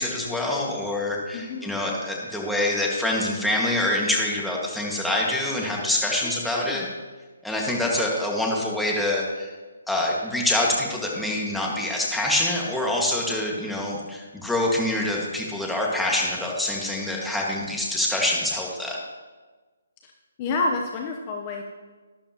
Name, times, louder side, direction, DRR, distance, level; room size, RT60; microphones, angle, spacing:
voice 1, 0.0-6.8 7.4-9.5 9.9-19.0, left 1 dB, ahead, -3 dB, 1.8 m, -25 dB
voice 2, 1.3-1.7 6.2-6.9 20.0-20.1 20.4-21.6, left 3 dB, 30° left, 2 dB, 0.9 m, -29 dB
12.5 x 12.0 x 3.0 m, 1.3 s
hypercardioid pair, 150°, 0 cm